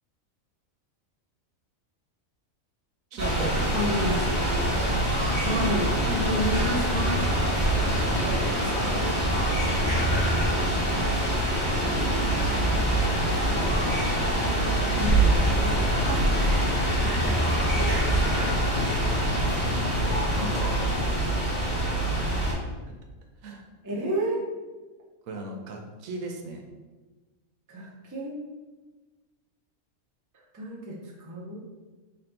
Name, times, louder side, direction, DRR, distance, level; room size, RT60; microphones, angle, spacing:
voice 1, 3.1-4.7 7.8-9.2 9.5-10.1 22.3-22.5 23.4-23.7 25.2-26.6, right 2 dB, 85° right, 2 dB, 1.0 m, -38 dB
sound 1, 3.2-22.5, right 1 dB, 10° right, 1.0 m, -24 dB
voice 2, 3.7-4.2 5.4-7.3 11.7-12.3 13.2-13.9 14.9-15.4 15.6-16.3 16.6-17.2 18.1-18.2 20.3-20.5 23.8-24.4 27.7-28.3 30.5-31.6, equal, 30° right, -3 dB, 0.3 m, -31 dB
sound 2, 6.1-21.1, left 3 dB, 65° left, 0.8 m, -40 dB
3.0 x 2.6 x 4.4 m, 1.3 s
omnidirectional pair, 1.4 m